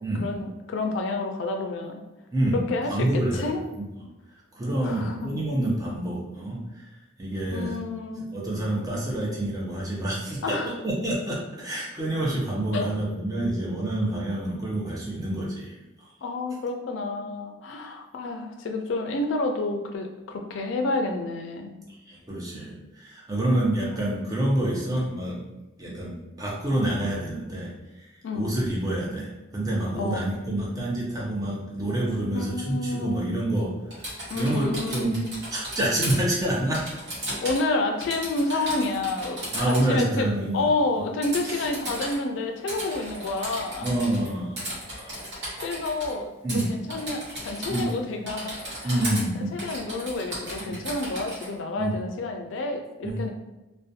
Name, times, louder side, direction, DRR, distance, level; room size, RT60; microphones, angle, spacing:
voice 1, 0.2-2.0 2.5-3.6 4.8-5.4 7.5-8.3 10.4-10.7 12.7-12.9 16.2-21.7 28.2-28.5 29.9-30.3 32.3-33.3 34.3-35.1 37.4-40.3 40.5-43.9 45.6-48.6 48.8-49.0 49.5-53.3, left 2 dB, 80° left, 4 dB, 0.4 m, -29 dB
voice 2, 2.3-3.9 4.5-6.9 7.2-7.8 8.2-10.6 10.8-16.1 21.9-25.4 25.8-33.8 34.3-35.2 35.5-36.9 38.5-38.7 39.5-40.7 41.0-41.1 41.4-41.6 43.8-45.1 46.4-46.8 47.7-47.9 48.8-49.6 50.7-50.8 51.8-52.0 53.0-53.3, right 1 dB, 20° right, -4 dB, 0.5 m, -28 dB
Typing, 33.9-36.2 36.7-37.7 38.0-39.9 41.2-42.2 42.7-44.3 44.6-46.1 46.5-46.6 46.9-48.0 48.3-49.2 49.6-51.5, right 1 dB, 60° right, 1.0 m, -35 dB
2.4 x 2.1 x 2.6 m, 1.0 s
head